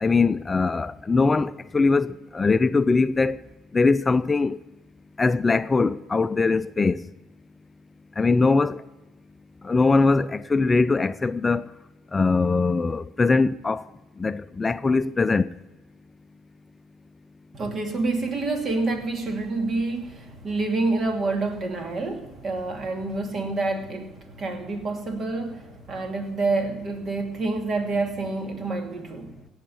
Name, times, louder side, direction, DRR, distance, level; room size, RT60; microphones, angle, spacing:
voice 1, 0.0-3.4 3.7-4.6 5.2-7.0 8.2-8.8 9.6-11.7 12.1-13.8 14.2-15.5, left 3 dB, 25° left, 0.5 m, -21 dB
voice 2, 17.5-29.3, right 3 dB, 45° right, 2.6 m, -28 dB
17.5 x 6.5 x 8.5 m
hypercardioid pair, 60°, 0 cm